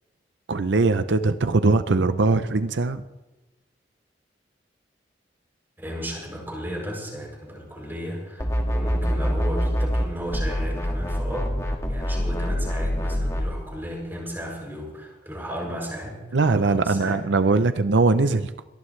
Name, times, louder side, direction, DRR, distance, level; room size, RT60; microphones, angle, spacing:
voice 1, 0.5-3.0 16.3-18.5, right 3 dB, 90° right, 12 dB, 0.6 m, -21 dB
voice 2, 5.8-16.2 16.6-17.2, equal, 10° right, -2 dB, 7.1 m, -34 dB
sound 1, 8.4-10.1 10.3-13.5, equal, 15° left, 1.8 m, -25 dB
22.5 x 18.5 x 3.3 m, 1.1 s
head